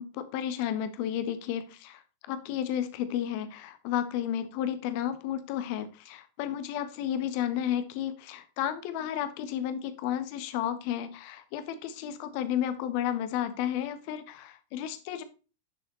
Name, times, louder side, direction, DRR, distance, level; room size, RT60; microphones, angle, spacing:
voice 1, 0.0-2.0 2.3-15.2, left 10 dB, 45° left, 11 dB, 1.3 m, -32 dB
10.5 x 6.9 x 3.0 m, 0.33 s
figure-of-eight pair, 90°, 0 cm